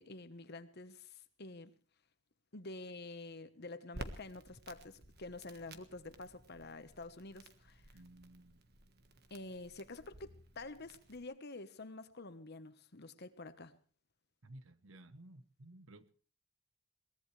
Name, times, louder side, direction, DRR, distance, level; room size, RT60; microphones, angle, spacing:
voice 1, 0.0-1.7 2.5-7.8 9.3-13.8, left 2 dB, 50° left, 1.2 m, -48 dB
Crackle, 3.9-11.2, right 1 dB, 50° right, 1.5 m, -53 dB
voice 2, 7.9-8.6 14.4-16.2, right 1 dB, 70° right, 1.1 m, -56 dB
22.0 x 19.5 x 3.3 m
head